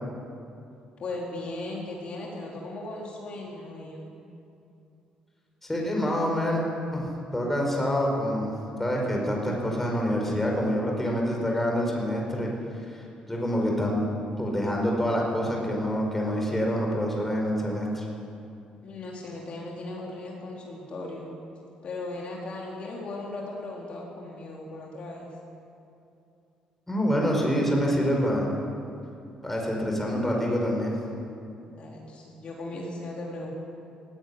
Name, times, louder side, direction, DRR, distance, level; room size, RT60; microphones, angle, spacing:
voice 1, 1.0-4.1 18.8-21.3 21.8-25.3 31.6-33.5, left 2 dB, 50° left, -2 dB, 4.0 m, -37 dB
voice 2, 5.6-6.6 6.9-12.5 13.3-14.0 14.4-18.0 26.9-28.5 29.4-30.9, equal, 10° left, -1 dB, 4.9 m, -26 dB
17.5 x 17.5 x 9.6 m, 2.7 s
cardioid pair, 135°, 3 cm